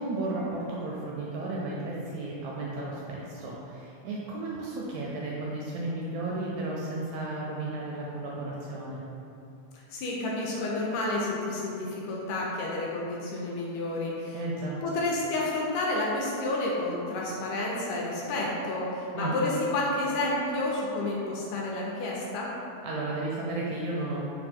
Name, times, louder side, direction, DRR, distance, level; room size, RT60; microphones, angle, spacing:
voice 1, 0.0-9.0 14.3-14.8 19.1-19.4 22.8-24.2, right 2 dB, 80° right, -4 dB, 1.7 m, -33 dB
voice 2, 9.9-14.4 14.8-22.5, left 2 dB, 80° left, -4 dB, 2.0 m, -30 dB
5.1 x 2.2 x 4.2 m, 2.7 s
omnidirectional pair, 3.6 m